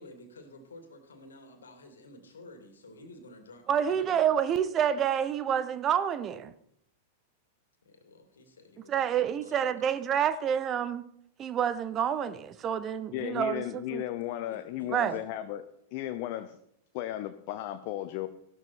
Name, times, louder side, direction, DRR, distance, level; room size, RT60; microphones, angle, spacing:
voice 1, 0.0-4.3 7.8-9.6 14.5-15.2, left 2 dB, 70° left, 7 dB, 2.6 m, -51 dB
voice 2, 3.7-6.5 8.9-11.1 11.4-14.0 14.9-15.2, right 8 dB, 30° right, 14 dB, 0.8 m, -28 dB
voice 3, 13.1-15.6 15.9-16.6 16.9-18.3, left 13 dB, 45° left, 9 dB, 0.8 m, -35 dB
15.0 x 12.0 x 4.4 m, 0.71 s
figure-of-eight pair, 95°, 0 cm